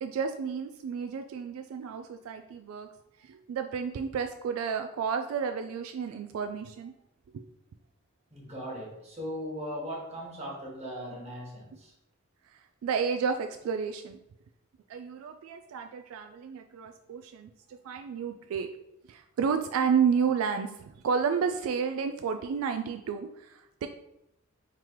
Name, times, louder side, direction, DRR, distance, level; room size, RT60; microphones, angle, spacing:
voice 1, 0.0-2.9 3.2-6.9 7.3-7.4 12.5-14.2 14.9-18.7 19.1-23.9, right 6 dB, 80° right, 8 dB, 0.3 m, -31 dB
voice 2, 8.3-11.9, equal, 30° right, -3 dB, 1.4 m, -38 dB
3.7 x 3.0 x 4.6 m, 0.86 s
head